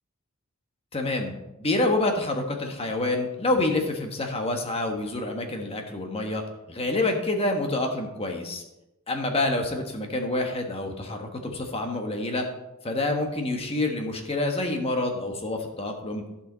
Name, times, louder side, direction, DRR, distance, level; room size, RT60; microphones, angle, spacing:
voice 1, 0.9-1.3 1.6-6.4 6.7-8.6 9.1-12.5 12.8-16.2, left 2 dB, 25° left, 3 dB, 1.3 m, -27 dB
14.5 x 5.8 x 3.9 m, 0.95 s
head